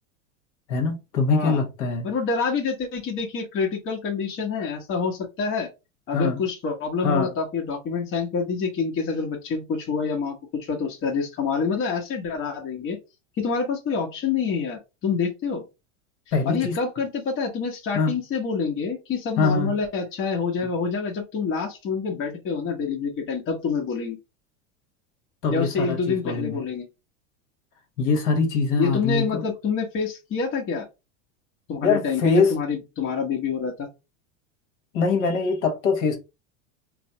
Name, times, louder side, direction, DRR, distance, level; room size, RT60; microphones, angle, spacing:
voice 1, 0.7-2.1 6.1-6.4 7.0-7.3 16.3-16.8 17.9-18.1 19.4-19.7 25.4-26.6 28.0-29.4 31.8-32.6 34.9-36.2, left 4 dB, 65° left, 1.1 m, -23 dB
voice 2, 2.0-5.7 6.1-13.0 13.4-15.6 16.5-24.2 25.5-26.8 28.8-30.9 31.7-33.9, left 5 dB, 35° left, 0.9 m, -27 dB
3.2 x 2.1 x 2.7 m
hypercardioid pair, 100°, 37 cm